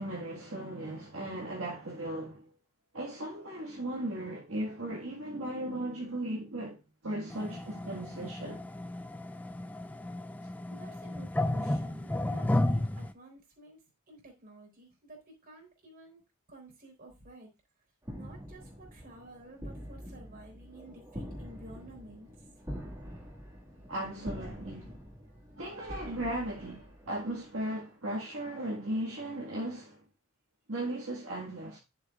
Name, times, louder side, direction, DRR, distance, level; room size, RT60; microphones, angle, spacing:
voice 1, 0.0-2.5 2.9-8.7 23.9-25.0 25.6-30.0 30.7-31.8, right 1 dB, 65° right, 1.8 m, -37 dB
sound 1, 7.3-13.1, left 1 dB, 5° left, 0.3 m, -33 dB
voice 2, 10.7-16.2 16.5-17.6 18.1-22.5, right 1 dB, 45° right, 3.8 m, -52 dB
sound 2, 18.0-27.5, equal, 15° right, 1.9 m, -45 dB
10.5 x 7.1 x 2.4 m
head